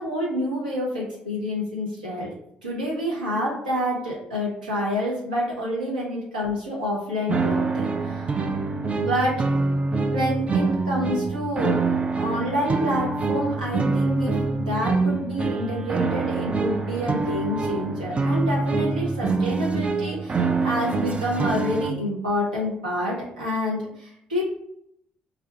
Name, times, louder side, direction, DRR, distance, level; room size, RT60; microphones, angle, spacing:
voice 1, 0.0-2.3 2.6-8.3 9.0-9.4 10.1-11.8 12.1-24.4, equal, 80° right, -4 dB, 0.7 m, -28 dB
sound 1, 7.3-21.9, right 3 dB, 25° right, 0.3 m, -25 dB
2.5 x 2.2 x 3.6 m, 0.76 s
figure-of-eight pair, 45°, 5 cm